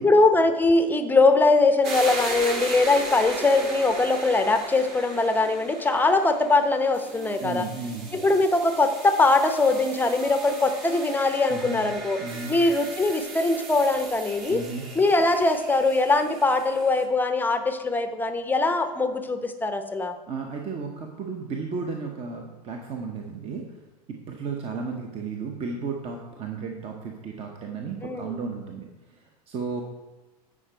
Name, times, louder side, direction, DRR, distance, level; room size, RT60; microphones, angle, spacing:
voice 1, 0.0-7.7 8.1-12.2 12.5-14.6 15.0-20.1 28.0-28.4, left 3 dB, 10° left, 8 dB, 0.7 m, -22 dB
sound 1, 1.8-17.0, right 3 dB, 45° right, 2.2 m, -37 dB
voice 2, 7.4-8.1 11.5-11.8 12.2-12.5 14.5-14.8 20.3-23.8 24.1-29.8, right 4 dB, 30° right, 2 dB, 0.9 m, -34 dB
9.9 x 5.1 x 4.5 m, 1.1 s
figure-of-eight pair, 85°, 21 cm